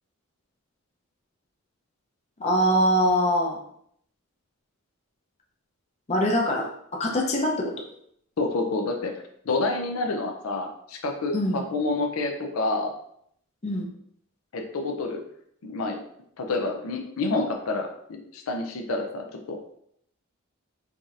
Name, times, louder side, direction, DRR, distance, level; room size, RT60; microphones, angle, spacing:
voice 1, 2.4-3.6 6.1-7.7 11.3-11.6 13.6-13.9, equal, 30° left, 0 dB, 0.6 m, -23 dB
voice 2, 8.4-9.1 9.4-12.9 14.5-15.2 15.6-16.0 16.4-19.6, left 3 dB, 90° left, 4 dB, 0.5 m, -28 dB
4.7 x 2.7 x 2.4 m, 0.70 s
head